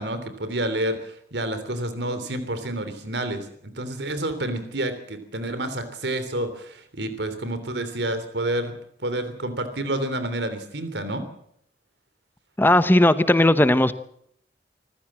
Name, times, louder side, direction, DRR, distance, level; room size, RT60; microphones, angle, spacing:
voice 1, 0.0-3.5 3.7-8.7 9.0-11.2, right 1 dB, 80° right, 10 dB, 3.3 m, -29 dB
voice 2, 12.6-13.9, left 1 dB, 10° left, 13 dB, 0.9 m, -17 dB
25.0 x 15.0 x 7.5 m, 0.69 s
head